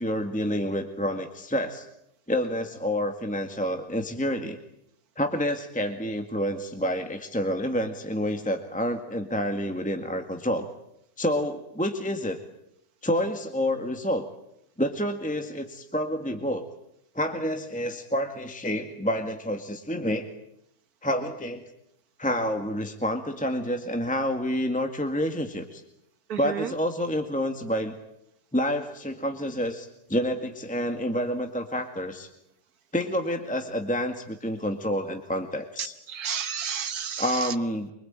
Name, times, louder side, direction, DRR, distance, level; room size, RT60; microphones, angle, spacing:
voice 1, 0.0-1.9 2.3-4.6 5.2-10.7 11.2-12.4 13.0-14.3 14.8-16.7 17.2-20.3 21.0-21.6 22.2-25.8 26.4-27.9 28.5-32.3 32.9-35.9 37.2-37.9, equal, 5° left, 5 dB, 1.9 m, -28 dB
voice 2, 26.3-26.7 35.8-37.5, right 7 dB, 70° right, 11 dB, 1.8 m, -32 dB
25.0 x 24.5 x 9.0 m, 0.78 s
omnidirectional pair, 1.7 m